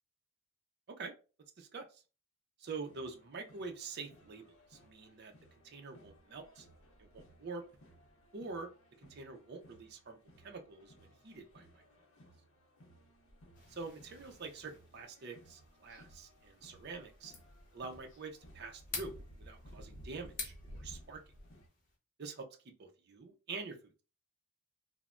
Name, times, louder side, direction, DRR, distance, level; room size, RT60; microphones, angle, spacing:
sound 1, 2.6-21.7, equal, 80° left, 0.7 m, -58 dB
voice 1, 2.6-4.4 4.7-5.3 5.6-6.7 7.1-7.6 8.3-8.7 9.1-10.2 10.4-11.8 13.7-17.3 17.7-21.2 22.2-24.0, right 4 dB, 50° right, 4 dB, 0.5 m, -46 dB
sound 2, 13.5-22.0, left 4 dB, 40° left, 0.7 m, -50 dB
3.1 x 2.1 x 2.4 m, 0.33 s
head